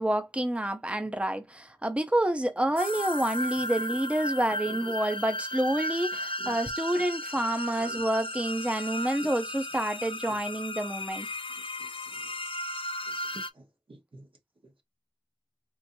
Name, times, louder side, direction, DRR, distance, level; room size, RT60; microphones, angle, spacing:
voice 1, 0.0-11.3, right 1 dB, 15° right, 0.6 m, -28 dB
sound 1, 2.8-13.5, left 1 dB, 80° left, 0.4 m, -35 dB
voice 2, 3.5-4.0 4.5-5.0 6.4-6.6 7.8-8.0 9.2-9.3 10.2-10.4 11.5-12.3 13.0-14.3 14.6-14.8, right 2 dB, 80° right, 1.2 m, -50 dB
4.6 x 2.5 x 2.6 m
wide cardioid pair, 45°, 9 cm